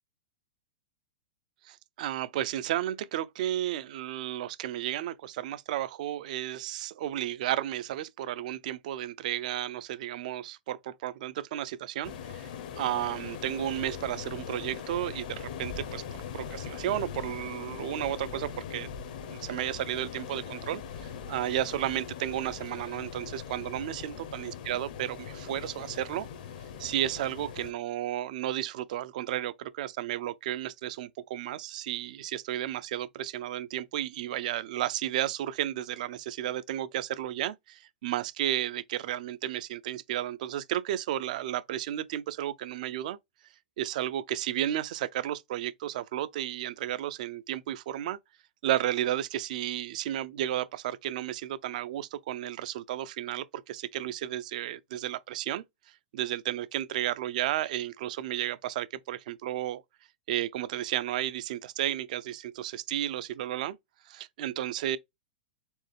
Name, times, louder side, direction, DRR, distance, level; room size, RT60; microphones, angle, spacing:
voice 1, 1.6-12.5 12.8-16.0 16.3-18.9 19.3-26.3 26.8-43.2 43.8-48.2 48.6-55.6 56.1-59.8 60.3-63.8 64.1-65.0, right 12 dB, 55° right, 0.5 m, -33 dB
sound 1, 12.0-27.7, left 7 dB, 60° left, 0.9 m, -41 dB
4.4 x 3.6 x 3.3 m
hypercardioid pair, 150°, 5 cm